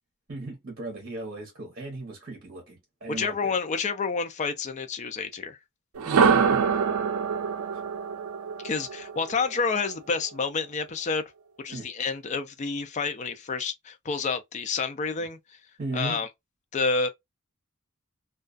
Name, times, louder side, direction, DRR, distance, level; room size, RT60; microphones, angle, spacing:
voice 1, 0.3-3.5 6.0-6.9 7.7-7.8 11.7-11.9 15.8-16.2, right 2 dB, 45° right, 0.9 m, -37 dB
voice 2, 3.2-5.6 8.6-11.2 11.6-15.4 15.9-16.3 16.7-17.1, left 4 dB, 35° left, 0.4 m, -29 dB
sound 1, 5.9-9.9, right 6 dB, 90° right, 0.4 m, -25 dB
2.3 x 2.3 x 2.3 m
head